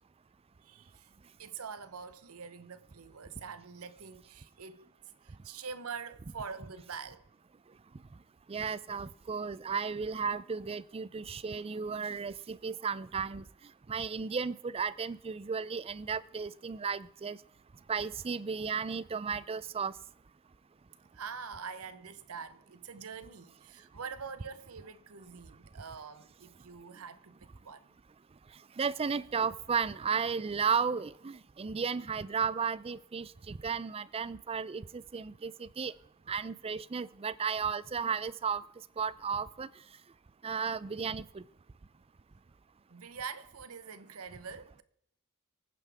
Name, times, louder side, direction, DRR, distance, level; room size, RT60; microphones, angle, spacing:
voice 1, 0.6-1.1 1.4-4.9 5.2-7.3 21.1-27.9 42.9-44.8, right 6 dB, 75° right, 0.9 m, -45 dB
voice 2, 8.5-13.5 13.9-17.4 17.9-19.9 28.8-35.9 36.3-38.6 39.0-39.7 40.4-41.4, right 6 dB, 25° right, 0.4 m, -34 dB
24.5 x 9.5 x 3.5 m
head